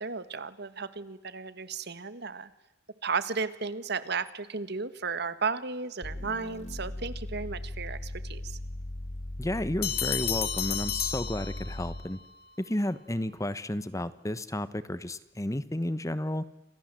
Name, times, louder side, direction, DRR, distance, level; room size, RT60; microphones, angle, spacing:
voice 1, 0.0-2.5 3.0-8.6, right 5 dB, 60° right, 14 dB, 1.7 m, -34 dB
sound 1, 6.0-12.2, left 1 dB, 35° left, 1.3 m, -38 dB
voice 2, 9.4-12.2 12.6-16.4, left 1 dB, 15° left, 15 dB, 1.1 m, -32 dB
sound 2, 9.8-12.1, left 9 dB, 55° left, 3.2 m, -32 dB
29.5 x 26.0 x 7.7 m, 0.98 s
head